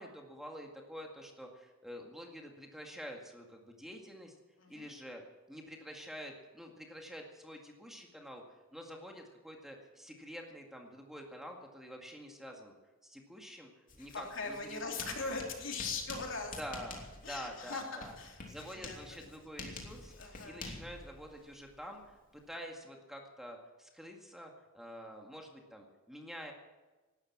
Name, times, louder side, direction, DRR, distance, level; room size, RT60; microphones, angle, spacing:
voice 1, 0.0-4.3 4.7-5.2 5.5-12.7 13.0-13.7 14.0-15.1 16.6-18.1 18.5-26.5, equal, ahead, 1 dB, 2.0 m, -48 dB
voice 2, 4.6-4.9 14.1-16.6 17.2-19.2 20.2-20.6, left 4 dB, 65° left, 1 dB, 3.3 m, -40 dB
Writing, 13.9-22.6, left 3 dB, 40° left, 3.0 m, -49 dB
18.0 x 12.5 x 6.1 m, 1.2 s
head